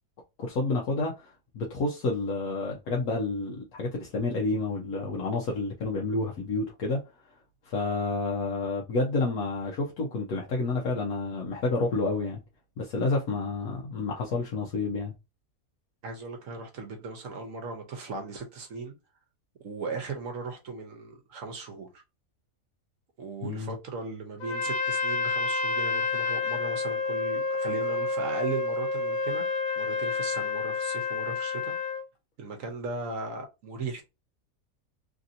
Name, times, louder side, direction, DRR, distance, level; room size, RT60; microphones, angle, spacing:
voice 1, 0.4-7.0 7.6-12.4 12.8-15.1 23.4-23.7, left 3 dB, 80° left, 1.2 m, -29 dB
voice 2, 16.0-18.9 19.6-22.0 23.2-31.7 32.4-34.0, right 3 dB, 65° right, 1.1 m, -37 dB
Trumpet, 24.4-32.1, left 4 dB, 55° left, 0.5 m, -29 dB
3.3 x 2.6 x 2.6 m
omnidirectional pair, 1.5 m